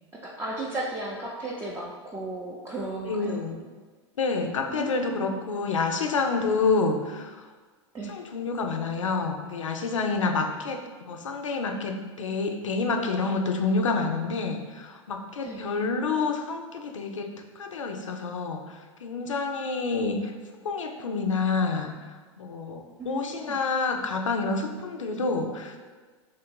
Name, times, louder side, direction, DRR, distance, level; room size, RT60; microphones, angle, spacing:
voice 1, 0.2-3.4 4.7-5.4 7.9-8.2 10.2-10.3 15.4-15.6 23.0-23.6, right 2 dB, 15° right, -4 dB, 0.5 m, -35 dB
voice 2, 3.0-3.6 4.2-7.5 8.1-20.3 20.6-25.8, left 4 dB, 85° left, 4 dB, 0.4 m, -28 dB
3.0 x 2.6 x 4.4 m, 1.4 s
hypercardioid pair, 95°, 16 cm